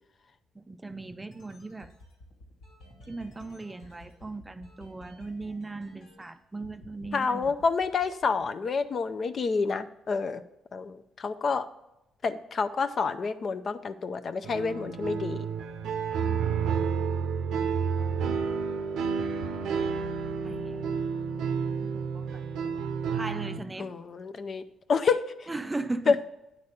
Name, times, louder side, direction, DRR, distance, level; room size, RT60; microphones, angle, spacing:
voice 1, 0.6-1.9 3.1-7.5 16.2-16.5 20.4-20.8 21.8-23.9 25.5-26.2, right 2 dB, 15° right, 0.4 m, -38 dB
sound 1, 0.9-6.3 6.6-7.1 7.4-8.9, left 1 dB, 90° left, 2.4 m, -53 dB
voice 2, 7.1-10.4 10.7-11.7 12.2-15.4 23.8-24.6 24.9-25.5 26.1-26.2, left 4 dB, 45° left, 0.5 m, -28 dB
sound 2, 14.4-23.6, right 6 dB, 85° right, 0.6 m, -30 dB
9.6 x 4.1 x 6.6 m
cardioid pair, 90°, 0 cm